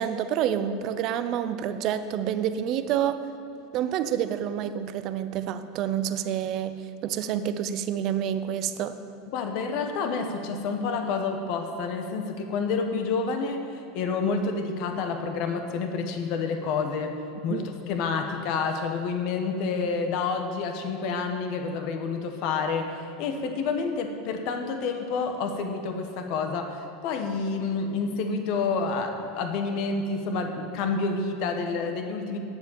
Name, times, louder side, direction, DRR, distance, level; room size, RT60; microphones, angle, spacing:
voice 1, 0.0-3.2 3.7-8.9 17.5-17.7, right 9 dB, 40° right, 11 dB, 0.6 m, -28 dB
voice 2, 9.3-17.2 17.4-32.4, left 4 dB, 45° left, 5 dB, 1.2 m, -29 dB
9.8 x 7.4 x 8.7 m, 2.7 s
supercardioid pair, 165°, 0 cm